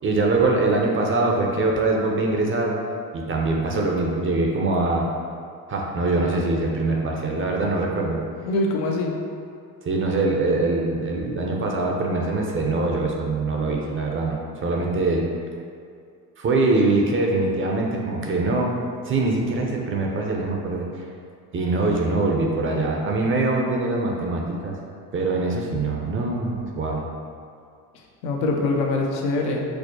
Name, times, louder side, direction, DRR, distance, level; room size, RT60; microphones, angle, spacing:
voice 1, 0.0-2.7 3.1-5.1 5.7-8.2 9.9-15.3 16.4-18.7 19.0-20.9 21.5-24.8 25.1-27.0, right 2 dB, 30° right, 0 dB, 0.5 m, -23 dB
voice 2, 8.5-9.1 28.2-29.6, left 2 dB, 80° left, 0 dB, 0.6 m, -23 dB
4.5 x 2.1 x 2.7 m, 2.4 s
hypercardioid pair, 65°, 46 cm